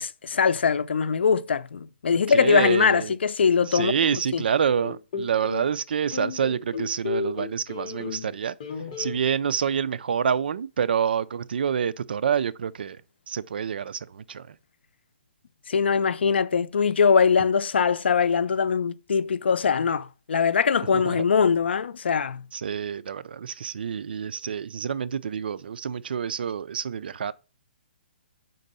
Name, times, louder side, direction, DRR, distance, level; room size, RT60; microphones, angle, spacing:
voice 1, 0.0-4.4 15.7-22.4, left 6 dB, 80° left, 0.6 m, -22 dB
voice 2, 2.3-3.1 3.7-8.6 9.0-13.0 13.3-14.6 20.9-21.2 22.5-27.3, right 7 dB, 60° right, 0.4 m, -27 dB
sound 1, 4.8-5.7 6.1-8.3 8.6-9.2, left 5 dB, 35° left, 1.0 m, -33 dB
5.4 x 3.9 x 5.3 m
hypercardioid pair, 175°, 6 cm